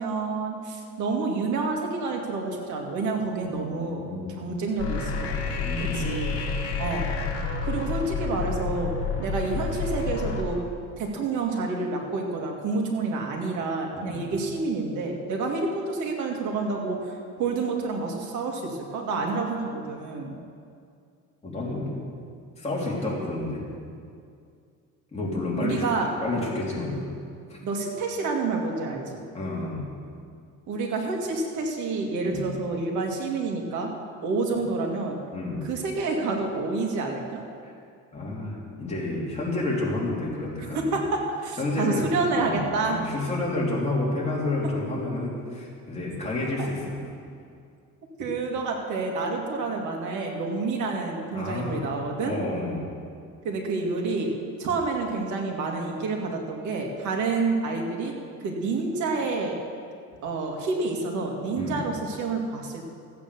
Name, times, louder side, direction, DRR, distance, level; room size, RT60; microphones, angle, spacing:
voice 1, 0.0-4.0 4.4-5.4 5.9-6.3 6.8-7.1 7.6-10.6 11.0-20.3 25.6-26.1 26.3-26.5 27.6-29.2 30.7-33.9 34.2-35.2 35.6-37.4 40.7-43.0 46.6-46.7 48.2-52.3 53.4-54.3 54.6-58.1 58.4-59.6 60.2-62.8, right 3 dB, 70° right, 1 dB, 2.4 m, -28 dB
voice 2, 3.4-4.3 5.3-6.5 13.9-14.3 21.4-21.9 22.6-23.6 25.1-25.8 26.2-27.0 27.5-27.6 29.3-29.9 32.2-32.5 35.3-35.6 37.6-37.7 38.1-41.0 41.6-47.1 51.3-51.9 52.2-52.8 61.5-61.8, left 2 dB, 20° left, -5 dB, 3.5 m, -30 dB
sound 1, 4.8-10.4, left 4 dB, 50° left, 2.4 m, -29 dB
14.5 x 8.6 x 6.9 m, 2.3 s
cardioid pair, 125°, 31 cm